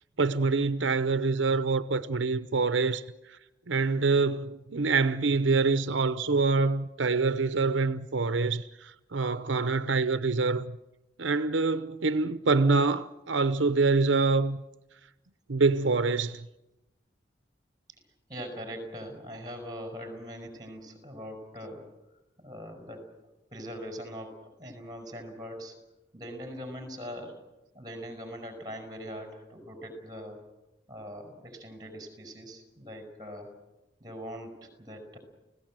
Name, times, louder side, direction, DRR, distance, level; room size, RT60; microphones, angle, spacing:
voice 1, 0.2-3.4 3.7-10.8 11.2-14.6 15.5-16.5, right 3 dB, 90° right, 0.8 m, -26 dB
voice 2, 18.3-21.9 22.4-23.1 23.5-25.7 26.1-27.4 27.7-30.4 30.9-33.5 34.0-35.2, equal, 20° right, 5.5 m, -41 dB
30.0 x 17.5 x 7.6 m
head